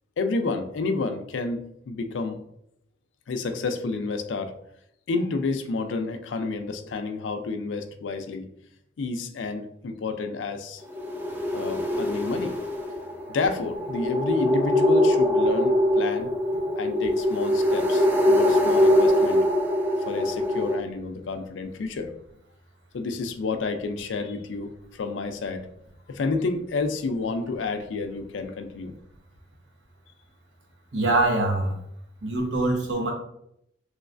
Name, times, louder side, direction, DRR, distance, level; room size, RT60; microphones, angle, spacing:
voice 1, 0.2-2.4 3.3-4.5 5.1-8.5 9.0-10.8 11.5-12.6 13.3-16.3 16.8-19.5 20.0-22.1 22.9-25.7 26.1-28.9, left 3 dB, 85° left, 7 dB, 0.4 m, -30 dB
sound 1, 10.9-20.7, left 1 dB, 10° right, 0.4 m, -23 dB
voice 2, 30.9-31.8 32.2-33.1, right 2 dB, 75° right, 0 dB, 0.9 m, -23 dB
3.1 x 3.1 x 2.5 m, 0.75 s
head